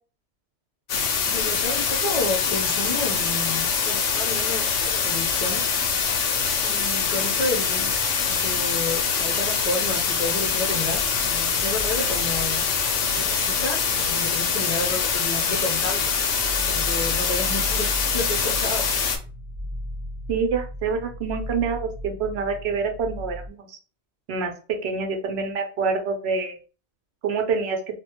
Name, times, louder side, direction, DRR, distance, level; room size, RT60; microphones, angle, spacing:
sound 1, 0.9-19.2, left 6 dB, 90° left, 0.9 m, -24 dB
voice 1, 1.2-5.6 6.6-7.9 8.3-12.6 13.1-16.2 16.6-18.9, left 2 dB, 45° left, -1 dB, 0.5 m, -31 dB
sound 2, 10.1-23.5, left 1 dB, 45° right, 0.6 m, -37 dB
voice 2, 20.3-23.8 24.3-26.6 27.2-27.8, right 5 dB, 70° right, 5 dB, 0.8 m, -26 dB
2.3 x 2.1 x 2.8 m, 0.36 s
omnidirectional pair, 1.2 m